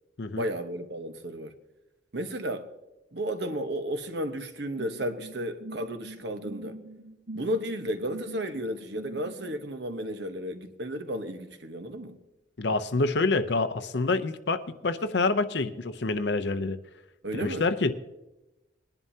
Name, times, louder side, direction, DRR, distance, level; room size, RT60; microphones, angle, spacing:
voice 1, 0.4-1.5 2.1-2.7 3.1-6.8 7.3-12.2 17.2-17.7, equal, 65° right, 1.1 m, -33 dB
sound 1, 4.8-9.6, right 1 dB, 80° right, 1.5 m, -43 dB
voice 2, 12.6-16.8 17.3-17.9, left 3 dB, 65° left, 0.7 m, -27 dB
21.0 x 11.0 x 2.8 m
head